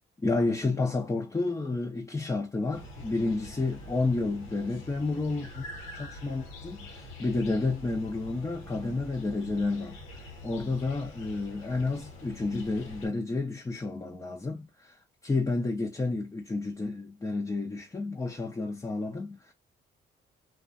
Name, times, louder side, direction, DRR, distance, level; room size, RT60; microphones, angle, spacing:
voice 1, 0.2-5.7 5.9-19.5, left 3 dB, 15° left, 0.6 m, -31 dB
sound 1, 2.7-13.1, left 1 dB, 85° left, 0.8 m, -45 dB
2.4 x 2.2 x 2.5 m
cardioid pair, 90°, 20 cm